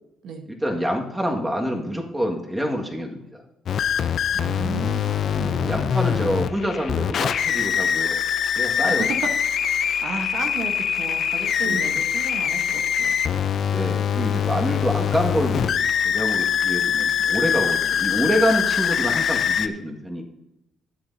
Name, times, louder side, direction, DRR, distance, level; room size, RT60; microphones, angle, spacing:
voice 1, 0.5-3.4 5.5-8.2 8.5-9.1 11.6-12.0 13.7-20.2, equal, 10° right, 1 dB, 1.9 m, -26 dB
sound 1, 3.7-19.7, left 8 dB, 55° left, 0.5 m, -23 dB
voice 2, 4.3-6.4 8.9-9.2 10.0-13.1, right 4 dB, 65° right, 4 dB, 1.2 m, -34 dB
15.5 x 7.9 x 2.8 m, 0.92 s
supercardioid pair, 70°, 0 cm